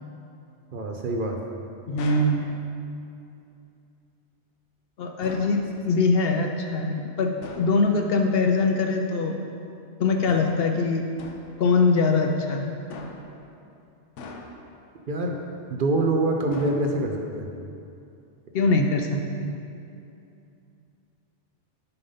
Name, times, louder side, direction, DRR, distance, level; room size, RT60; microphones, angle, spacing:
voice 1, 0.7-1.4 15.1-15.4 15.7-17.5, right 2 dB, 55° right, 2 dB, 0.7 m, -25 dB
voice 2, 1.9-2.5 5.0-9.4 10.0-11.1 11.6-12.7 18.5-19.6, left 3 dB, 65° left, 3 dB, 0.7 m, -23 dB
sound 1, 2.0-2.4 5.2-5.6 7.4-7.8 10.3-10.7 11.2-11.6 12.9-13.4 14.2-14.8 16.5-17.2, left 3 dB, 90° left, 1.0 m, -41 dB
6.8 x 5.3 x 5.5 m, 2.6 s
omnidirectional pair, 1.2 m